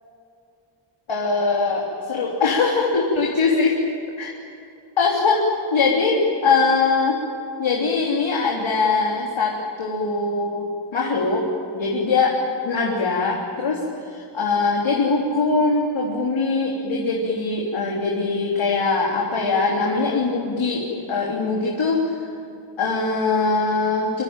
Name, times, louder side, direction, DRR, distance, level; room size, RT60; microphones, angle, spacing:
voice 1, 1.1-3.7 4.2-4.3 5.0-7.2 7.6-22.3 22.8-24.2, left 4 dB, 70° left, -2 dB, 3.6 m, -22 dB
25.5 x 25.5 x 9.1 m, 2.7 s
cardioid pair, 75°, 48 cm